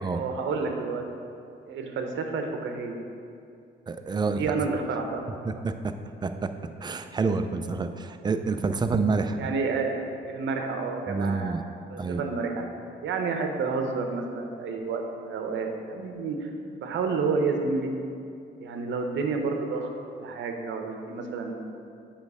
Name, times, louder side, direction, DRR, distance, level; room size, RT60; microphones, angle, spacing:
voice 1, 0.1-1.0 1.7-3.0 4.4-5.3 9.4-10.0 10.3-11.6 11.9-12.6 13.0-16.5 16.8-17.9 18.6-21.5, right 4 dB, 70° right, 4 dB, 0.8 m, -30 dB
voice 2, 3.9-4.4 5.5-5.7 6.2-6.5 6.8-9.5 11.1-11.6 12.0-12.2, right 4 dB, 20° right, 8 dB, 0.4 m, -28 dB
8.2 x 3.2 x 4.8 m, 2.4 s
cardioid pair, 90°, 20 cm